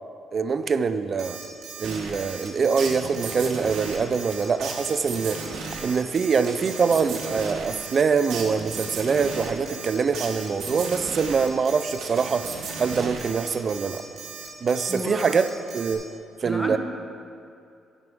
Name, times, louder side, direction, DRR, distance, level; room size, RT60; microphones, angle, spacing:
voice 1, 0.3-1.4 1.8-5.4 5.8-12.5 12.8-14.0 14.6-15.5 15.7-16.0 16.4-16.8, right 5 dB, 40° right, 11 dB, 0.4 m, -24 dB
Alarm, 1.2-15.9, right 6 dB, 60° right, 1.5 m, -40 dB
sound 1, 1.8-14.0, right 3 dB, 75° right, 1.3 m, -37 dB
sound 2, 3.6-5.6, left 1 dB, 55° left, 2.1 m, -50 dB
voice 2, 14.9-15.4 16.4-16.8, equal, 5° left, 2 dB, 0.9 m, -31 dB
10.5 x 5.3 x 6.2 m, 2.5 s
cardioid pair, 125°, 0 cm